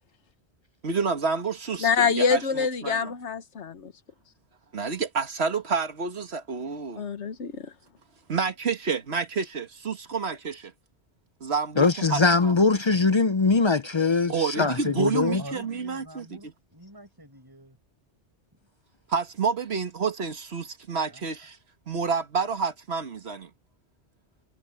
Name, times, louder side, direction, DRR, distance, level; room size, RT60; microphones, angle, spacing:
voice 1, 0.8-3.1 4.7-7.0 8.3-10.7 11.4-12.6 14.3-16.2 19.1-21.6 21.9-23.5, right 5 dB, 65° right, 1.9 m, -29 dB
voice 2, 1.8-3.9 7.0-7.7, left 6 dB, 85° left, 1.5 m, -25 dB
voice 3, 11.8-15.4, left 4 dB, 40° left, 0.4 m, -22 dB
voice 4, 15.4-17.8 18.6-18.7 21.1-21.2, right 1 dB, 20° right, 6.2 m, -46 dB
omnidirectional pair, 1.1 m